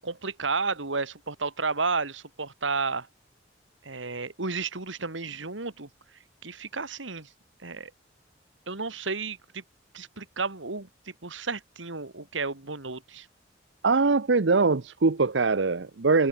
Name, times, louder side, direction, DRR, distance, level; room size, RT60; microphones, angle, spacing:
voice 1, 0.0-3.1 3.8-5.9 6.4-7.3 7.6-7.9 8.7-9.6 9.9-10.9 11.2-13.3, right 4 dB, 90° right, 2.6 m, -32 dB
voice 2, 13.8-16.3, right 4 dB, 70° right, 0.8 m, -22 dB
head